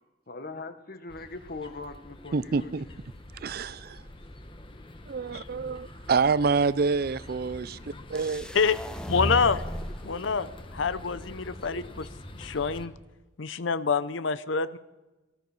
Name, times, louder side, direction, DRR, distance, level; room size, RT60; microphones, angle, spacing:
voice 1, 0.3-2.7, left 3 dB, 50° left, 9 dB, 1.2 m, -40 dB
sound 1, 1.1-12.9, left 1 dB, 25° left, 1.1 m, -45 dB
voice 2, 2.3-2.9 3.4-4.0 5.1-8.5, right 4 dB, 50° right, 18 dB, 0.4 m, -27 dB
sound 2, 8.2-10.1, equal, 5° left, 0.7 m, -34 dB
voice 3, 9.1-9.6 10.0-12.9 13.4-14.8, left 5 dB, 85° left, 14 dB, 0.7 m, -27 dB
18.5 x 13.5 x 5.5 m, 1.1 s
head